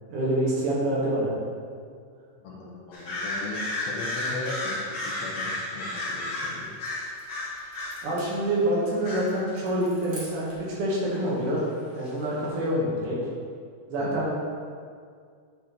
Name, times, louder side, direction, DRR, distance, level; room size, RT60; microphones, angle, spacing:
voice 1, 0.1-1.3 8.0-10.4 10.8-11.6 12.0-13.2 13.9-14.3, right 1 dB, 80° right, -6 dB, 3.2 m, -26 dB
voice 2, 2.4-6.8 14.0-14.1, left 2 dB, 70° left, -3 dB, 1.8 m, -38 dB
sound 1, 2.9-8.1 9.0-9.6 12.1-12.2, left 2 dB, 45° left, 1.8 m, -32 dB
sound 2, 6.2-10.7, right 1 dB, 40° right, 2.3 m, -49 dB
9.1 x 4.5 x 4.4 m, 2.1 s
omnidirectional pair, 3.5 m